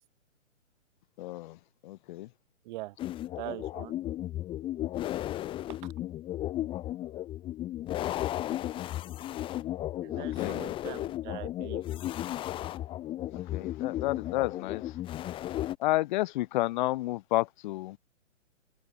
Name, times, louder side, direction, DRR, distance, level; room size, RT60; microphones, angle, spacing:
voice 1, 1.2-1.6 1.8-2.3 10.2-10.6 13.3-14.9 15.8-18.0, left 18 dB, 35° left, 2.9 m, -31 dB
voice 2, 2.6-3.0 3.4-3.9 5.8-5.9 10.0-11.8, right 19 dB, 35° right, 4.4 m, -42 dB
sound 1, 3.0-15.8, left 13 dB, 15° left, 1.0 m, -34 dB
open air
hypercardioid pair, 135°, 40 cm